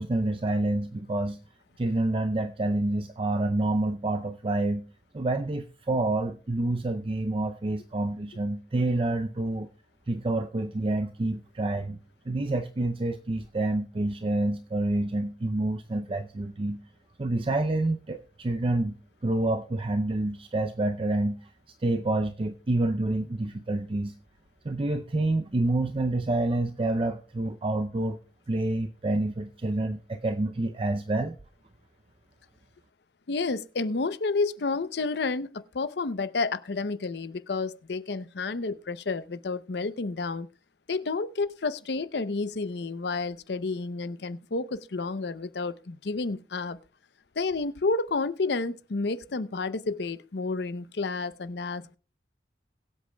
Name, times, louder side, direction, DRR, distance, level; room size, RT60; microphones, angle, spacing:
voice 1, 0.0-1.4 1.8-4.8 5.1-9.7 10.1-12.0 12.3-16.8 17.2-19.0 19.2-21.5 21.8-24.1 24.6-28.2 28.5-31.4, right 2 dB, 30° right, 0.5 m, -28 dB
voice 2, 33.3-40.5 40.9-46.8 47.4-52.0, left 3 dB, 65° left, 0.6 m, -30 dB
22.0 x 8.2 x 2.2 m
head